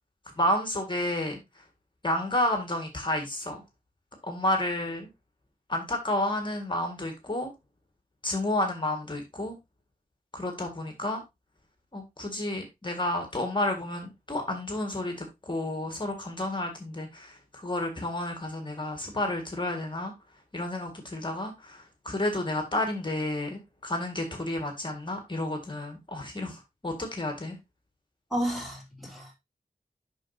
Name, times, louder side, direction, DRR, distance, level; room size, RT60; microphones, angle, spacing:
voice 1, 0.4-1.6 2.0-3.6 4.2-5.1 5.7-7.5 8.2-9.6 10.3-11.2 11.9-20.1 20.5-27.6, left 1 dB, 30° left, 1.8 m, -31 dB
voice 2, 28.3-29.3, right 1 dB, ahead, 3.3 m, -32 dB
7.3 x 6.1 x 2.8 m
wide cardioid pair, 90°, 16 cm